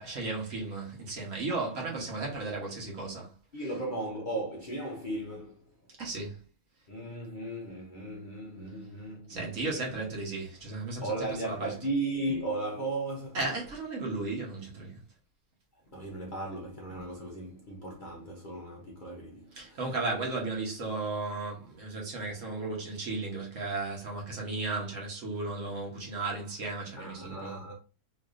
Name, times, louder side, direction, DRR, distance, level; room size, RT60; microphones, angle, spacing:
voice 1, 0.0-3.3 6.0-6.4 9.3-11.1 11.4-11.7 13.3-15.0 19.6-27.6, right 3 dB, 60° right, 1.4 m, -35 dB
voice 2, 3.5-5.7 6.9-9.5 11.0-13.4 15.9-20.0 26.9-27.7, right 2 dB, 45° left, 0.7 m, -36 dB
4.0 x 2.8 x 2.5 m
omnidirectional pair, 1.6 m